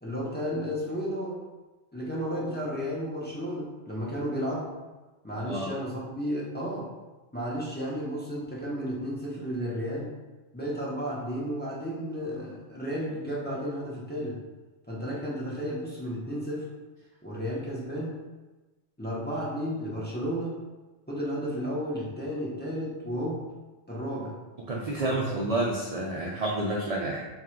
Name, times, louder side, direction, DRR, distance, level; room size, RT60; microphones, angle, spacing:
voice 1, 0.0-1.4 1.9-4.7 5.2-6.9 7.3-10.1 10.5-14.4 14.9-16.7 17.2-18.2 19.0-20.6 21.1-23.5 23.9-24.3 25.0-25.1, equal, 10° left, -6 dB, 0.7 m, -33 dB
voice 2, 5.3-5.7 24.7-27.3, right 2 dB, 50° right, -3 dB, 0.4 m, -29 dB
3.7 x 2.4 x 4.4 m, 1.2 s
omnidirectional pair, 1.2 m